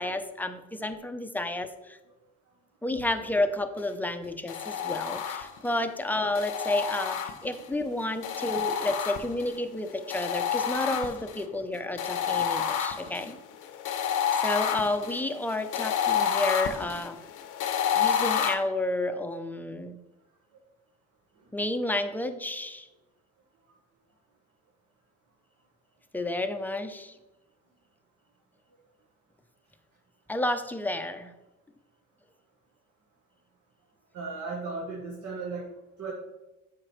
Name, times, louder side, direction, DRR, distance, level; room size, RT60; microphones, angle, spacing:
voice 1, 0.0-2.0 2.8-13.4 14.4-17.2 18.0-20.0 21.5-22.9 26.1-27.1 30.3-31.3, left 1 dB, 5° left, 8 dB, 0.5 m, -31 dB
sound 1, 4.5-5.7 6.3-7.7 8.2-9.6 10.1-11.4 12.0-18.5, left 8 dB, 85° left, 0.7 m, -29 dB
voice 2, 34.1-35.7 36.0-36.1, right 4 dB, 70° right, -1 dB, 1.3 m, -35 dB
7.7 x 5.0 x 3.1 m, 1.0 s
cardioid pair, 90°, 30 cm